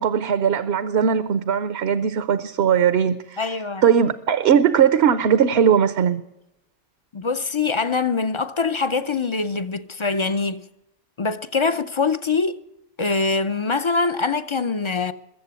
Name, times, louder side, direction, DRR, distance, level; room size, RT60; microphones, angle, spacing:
voice 1, 0.0-3.6 3.8-6.2, right 8 dB, 65° right, 0.9 m, -19 dB
voice 2, 3.4-3.8 7.1-10.6 11.2-12.6 13.0-15.1, left 4 dB, 35° left, 0.5 m, -23 dB
22.0 x 7.6 x 8.1 m
omnidirectional pair, 1.2 m